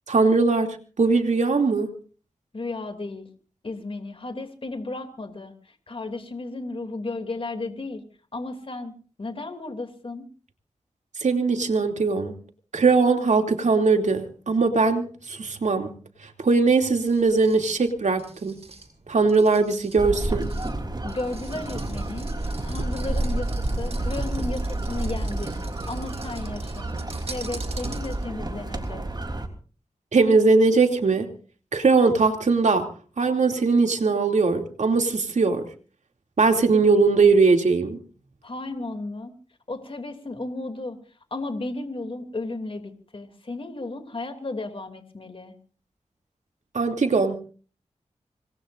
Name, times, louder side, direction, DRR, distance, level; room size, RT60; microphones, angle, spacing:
voice 1, 0.1-1.9 11.2-12.4 12.7-15.9 16.4-18.6 19.1-20.5 30.1-31.3 31.7-32.9 33.2-35.7 36.4-38.0 46.7-47.4, right 4 dB, 75° right, 4 dB, 2.9 m, -20 dB
voice 2, 2.5-3.3 3.6-8.0 8.3-8.9 9.2-10.3 21.0-25.5 25.9-26.9 27.2-29.0 38.4-39.3 39.7-41.0 41.3-45.5, left 2 dB, 45° left, 6 dB, 2.8 m, -34 dB
sound 1, 17.1-28.4, right 3 dB, 55° right, 6.2 m, -45 dB
sound 2, 20.0-29.5, right 1 dB, 35° right, 3.4 m, -29 dB
26.5 x 20.0 x 2.6 m, 0.40 s
wide cardioid pair, 70°, 12 cm